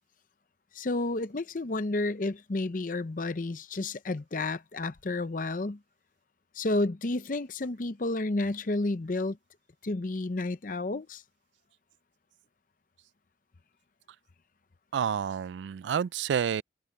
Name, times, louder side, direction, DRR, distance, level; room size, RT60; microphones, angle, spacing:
voice 1, 0.7-5.8 6.5-9.4 9.8-11.2, left 2 dB, 45° left, 0.6 m, -31 dB
voice 2, 14.9-16.6, right 8 dB, 75° right, 0.3 m, -29 dB
head